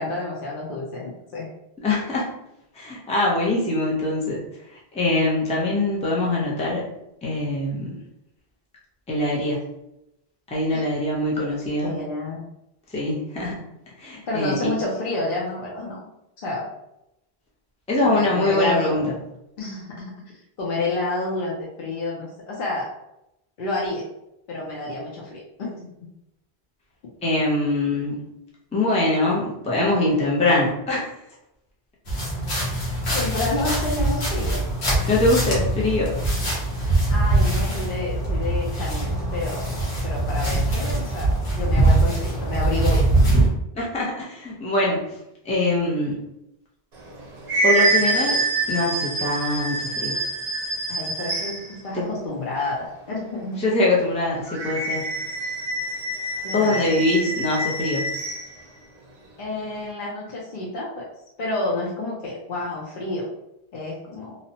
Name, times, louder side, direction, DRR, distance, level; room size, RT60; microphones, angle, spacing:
voice 1, 0.0-1.5 10.7-10.8 11.8-12.4 14.3-16.0 16.4-16.7 18.0-19.1 19.6-20.1 20.6-22.9 23.6-24.1 24.5-25.9 33.1-34.6 37.1-43.1 50.9-53.6 56.4-57.1 59.4-61.1 61.4-63.3 63.7-64.4, left 2 dB, 60° left, -4 dB, 0.7 m, -29 dB
voice 2, 1.8-2.3 2.7-4.4 4.9-6.8 7.2-7.9 9.1-9.6 10.5-11.9 12.9-13.5 14.0-14.7 17.9-19.0 27.2-28.2 28.7-31.1 35.1-36.1 43.7-45.0 45.4-46.2 47.6-48.4 48.7-50.2 51.9-52.0 53.6-55.0 56.5-58.0, left 2 dB, 10° left, -4 dB, 0.4 m, -23 dB
sound 1, 32.1-43.5, right 2 dB, 80° left, 1.1 m, -22 dB
sound 2, 47.0-51.8 54.5-58.5, right 2 dB, 50° right, 0.6 m, -26 dB
2.8 x 2.0 x 2.7 m, 0.84 s
omnidirectional pair, 1.1 m